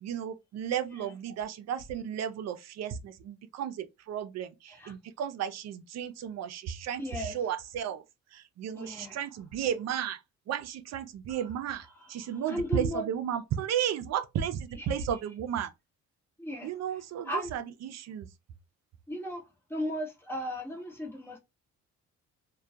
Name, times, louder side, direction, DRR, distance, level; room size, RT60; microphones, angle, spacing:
voice 1, 0.0-8.0 8.3-10.2 10.5-15.7 16.6-18.3, right 9 dB, 60° right, 0.5 m, -34 dB
voice 2, 7.0-7.3 8.7-9.2 11.3-11.4 12.0-13.1 14.8-14.9 16.4-16.7 17.2-17.5 19.1-19.4 19.7-21.4, equal, 10° left, 1.0 m, -36 dB
2.2 x 2.2 x 2.7 m
cardioid pair, 90°, 30 cm